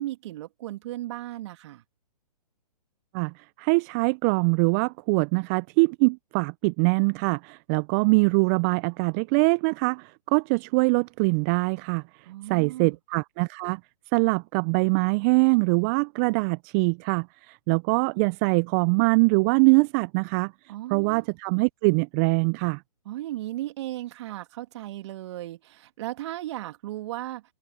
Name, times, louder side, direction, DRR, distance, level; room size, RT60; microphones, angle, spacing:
voice 1, 0.0-1.8 12.2-13.0 20.7-21.3 23.0-27.4, right 15 dB, 45° right, 2.7 m, -36 dB
voice 2, 3.1-12.0 12.5-13.8 14.1-20.5 20.9-22.8, right 30 dB, 25° right, 0.4 m, -23 dB
figure-of-eight pair, 130°, 21 cm